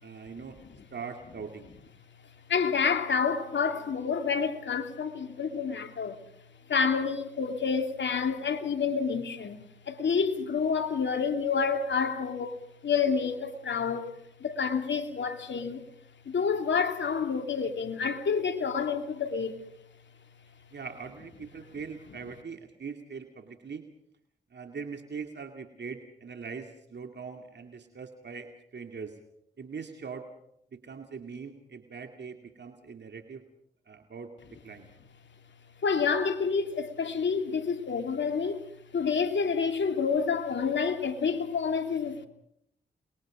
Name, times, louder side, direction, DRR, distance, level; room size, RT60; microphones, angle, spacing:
voice 1, 0.0-0.6 0.9-1.7 20.7-23.8 24.5-29.2 29.6-30.3 30.7-33.4 33.9-34.3 34.6-34.9, right 5 dB, 60° right, 2.4 m, -41 dB
voice 2, 2.5-6.2 6.7-12.5 12.8-14.1 14.4-15.8 16.3-19.6 35.8-38.6 38.9-42.3, left 5 dB, 65° left, 2.9 m, -28 dB
28.5 x 22.0 x 5.1 m
supercardioid pair, 40°, 20 cm